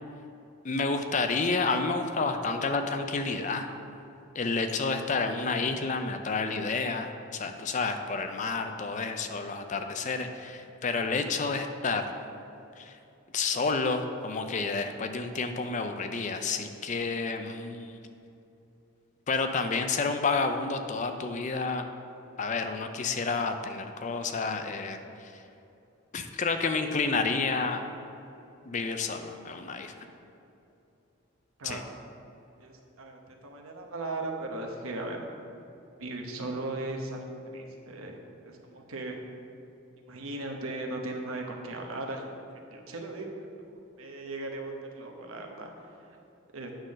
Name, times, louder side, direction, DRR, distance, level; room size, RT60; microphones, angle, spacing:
voice 1, 0.6-3.7 4.3-12.1 12.8-13.0 13.3-18.0 19.3-21.8 22.4-25.3 26.1-27.8 28.7-29.9 31.6-31.8, left 4 dB, 35° left, 7 dB, 0.4 m, -30 dB
voice 2, 32.6-35.3 36.0-37.3 37.5-38.2 38.5-39.2 40.1-42.3 42.7-43.3 43.7-45.7 46.5-46.7, right 2 dB, 80° right, 2 dB, 1.0 m, -37 dB
8.8 x 3.8 x 6.3 m, 2.9 s
head